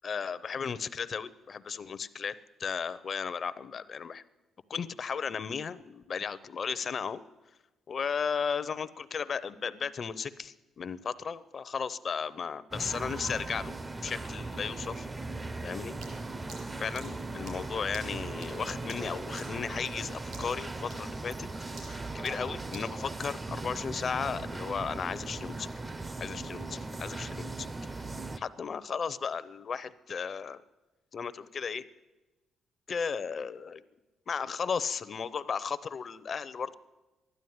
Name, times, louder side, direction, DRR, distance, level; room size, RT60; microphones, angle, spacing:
voice 1, 0.0-2.3 2.6-4.2 4.7-7.2 7.9-15.1 15.6-15.9 16.8-21.5 21.8-25.7 26.2-27.7 28.4-30.6 31.1-31.8 32.9-33.8 34.3-36.8, left 6 dB, 45° left, 16 dB, 0.7 m, -35 dB
sound 1, 12.7-28.4, right 2 dB, 20° right, 0.6 m, -38 dB
sound 2, 16.0-20.1 20.3-20.6 20.9-23.4, right 3 dB, 75° right, 4.9 m, -51 dB
12.5 x 11.0 x 9.4 m, 1.1 s
cardioid pair, 90°, 0 cm